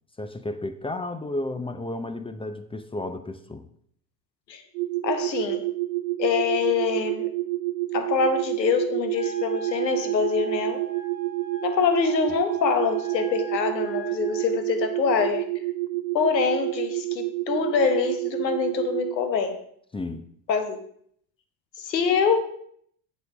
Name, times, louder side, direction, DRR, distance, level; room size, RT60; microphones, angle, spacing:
voice 1, 0.2-3.7 19.9-20.3, left 2 dB, 10° left, 0.6 m, -32 dB
sound 1, 4.7-19.1, right 18 dB, 55° right, 0.7 m, -29 dB
voice 2, 5.0-5.6 6.2-7.3 7.9-10.8 11.6-15.4 16.1-19.6 20.5-20.8 21.8-22.4, left 6 dB, 80° left, 1.2 m, -25 dB
Wind instrument woodwind instrument, 9.1-14.5, right 3 dB, 30° left, 3.1 m, -40 dB
7.8 x 7.4 x 5.0 m
figure-of-eight pair, 65°, 49 cm